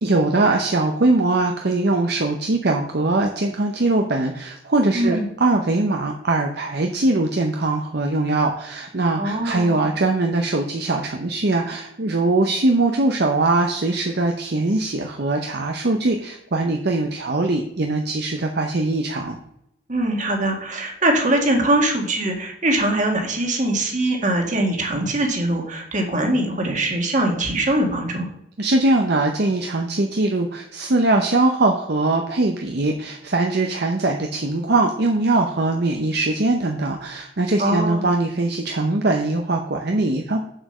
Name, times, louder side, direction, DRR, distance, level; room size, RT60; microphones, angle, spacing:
voice 1, 0.0-19.4 28.6-40.4, right 2 dB, 55° right, 3 dB, 0.8 m, -21 dB
voice 2, 4.9-5.3 9.2-9.8 19.9-28.3 37.6-38.1, right 1 dB, 40° right, 2 dB, 1.8 m, -22 dB
7.4 x 5.2 x 6.5 m, 0.79 s
head